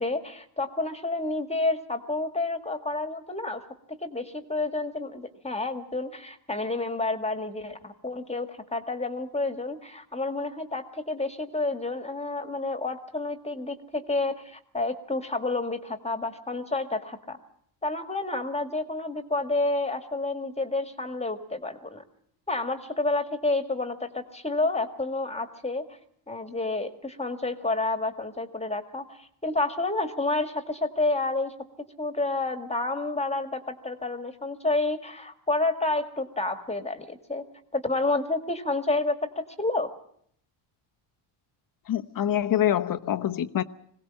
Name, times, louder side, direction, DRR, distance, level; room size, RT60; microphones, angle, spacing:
voice 1, 0.0-3.6 3.9-17.4 17.8-22.0 22.5-25.8 26.3-31.5 32.0-37.4 37.7-39.9, left 2 dB, 15° left, 1.8 m, -29 dB
voice 2, 41.9-43.6, left 11 dB, 40° left, 1.0 m, -25 dB
21.5 x 17.5 x 7.5 m
supercardioid pair, 95°, 49 cm